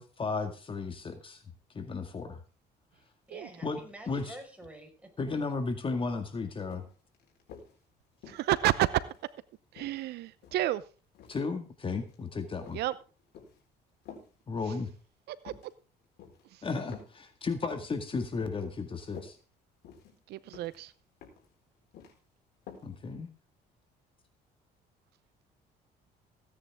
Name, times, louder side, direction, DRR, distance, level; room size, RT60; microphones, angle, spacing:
voice 1, 0.0-1.4 1.7-2.3 3.6-3.8 4.1-4.4 5.2-6.8 11.3-12.8 14.5-14.9 16.6-19.4 22.8-23.3, left 4 dB, 30° left, 7 dB, 2.0 m, -34 dB
voice 2, 2.9-5.1, right 1 dB, 10° right, 2 dB, 5.0 m, -49 dB
sound 1, 5.5-5.6 5.9-6.2 6.7-7.7 8.2-9.3 9.7-10.7 11.1-11.5 11.8-12.2 12.6-13.6 14.1-14.3 14.7-15.0 15.4-15.7 16.2-16.4 16.9-17.2 17.5-18.0 18.4-18.7 19.0-19.3 19.8-20.2 20.5-20.8 21.2-21.5 21.7-22.2 22.7-22.9 23.2-23.3, left 7 dB, 75° left, 4.3 m, -50 dB
voice 3, 8.3-8.9 9.7-10.8 12.7-12.9 15.3-15.5 16.5-16.6 20.3-20.9, right 14 dB, 75° right, 17 dB, 0.7 m, -30 dB
16.5 x 9.8 x 3.6 m, 0.35 s
cardioid pair, 110°, 17 cm